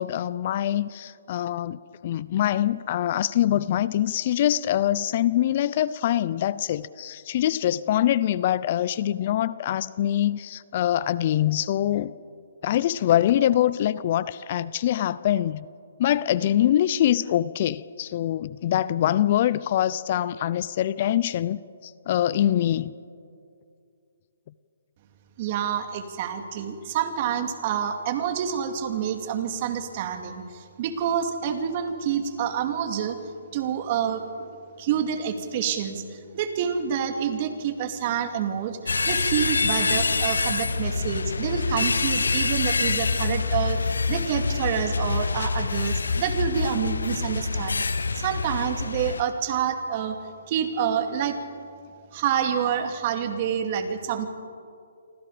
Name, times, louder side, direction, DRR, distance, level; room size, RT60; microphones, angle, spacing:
voice 1, 0.0-12.1 12.6-15.7 16.0-22.9, left 12 dB, 45° left, 18 dB, 0.6 m, -24 dB
voice 2, 25.4-33.2 33.5-34.3 34.8-50.2 50.5-51.4 52.1-54.3, right 8 dB, 40° right, 6 dB, 2.7 m, -28 dB
sound 1, 38.9-49.2, left 4 dB, 85° left, 1.1 m, -26 dB
28.5 x 25.0 x 5.1 m, 2.4 s
hypercardioid pair, 145°, 0 cm